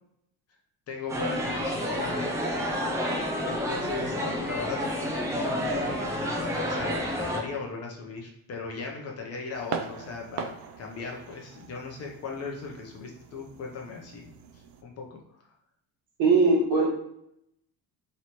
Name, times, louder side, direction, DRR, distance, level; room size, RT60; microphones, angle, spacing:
voice 1, 0.9-2.4 3.4-15.2, left 4 dB, 40° left, 0 dB, 0.7 m, -38 dB
sound 1, 1.1-7.4, equal, 10° right, 0.4 m, -29 dB
sound 2, 9.5-14.8, right 7 dB, 85° right, 0.6 m, -41 dB
voice 2, 16.2-16.9, right 3 dB, 60° right, -2 dB, 1.4 m, -20 dB
3.1 x 3.0 x 4.1 m, 0.74 s
cardioid pair, 175°, 39 cm